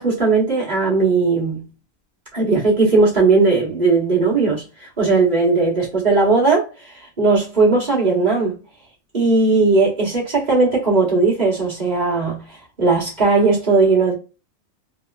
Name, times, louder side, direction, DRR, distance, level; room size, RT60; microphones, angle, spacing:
voice 1, 0.0-1.7 2.3-4.6 5.0-6.6 7.2-8.6 9.1-12.4 12.8-14.1, right 3 dB, 30° right, 1.7 m, -17 dB
3.5 x 2.9 x 2.4 m
omnidirectional pair, 1.4 m